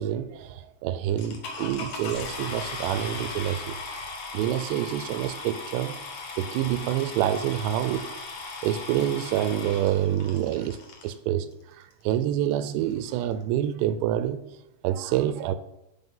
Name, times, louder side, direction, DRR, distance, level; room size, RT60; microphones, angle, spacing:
voice 1, 0.0-3.6 4.3-6.0 6.4-8.0 8.6-10.8 11.0-11.5 12.0-14.4 14.8-15.6, right 11 dB, 85° right, 2.5 m, -27 dB
sound 1, 1.2-11.1 11.9-12.0 12.5-12.6 12.8-13.1, left 3 dB, 60° left, 2.0 m, -38 dB
11.5 x 4.5 x 5.5 m
omnidirectional pair, 5.3 m